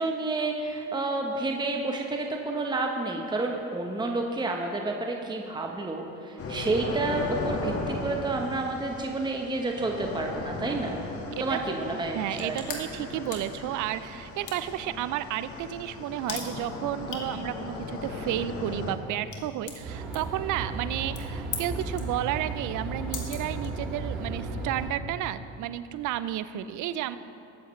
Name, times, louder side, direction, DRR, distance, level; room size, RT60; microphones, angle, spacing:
voice 1, 0.0-11.0 11.4-12.6, right 2 dB, 10° right, 2 dB, 1.0 m, -30 dB
sound 1, 6.4-18.9, left 2 dB, 40° left, 1.6 m, -37 dB
voice 2, 11.3-27.2, right 12 dB, 55° right, 14 dB, 0.6 m, -32 dB
sound 2, 12.1-24.2, left 6 dB, 55° left, 2.0 m, -44 dB
sound 3, 19.8-24.9, right 3 dB, 75° right, 2.5 m, -34 dB
20.5 x 8.0 x 3.2 m, 2.9 s
supercardioid pair, 80°, 36 cm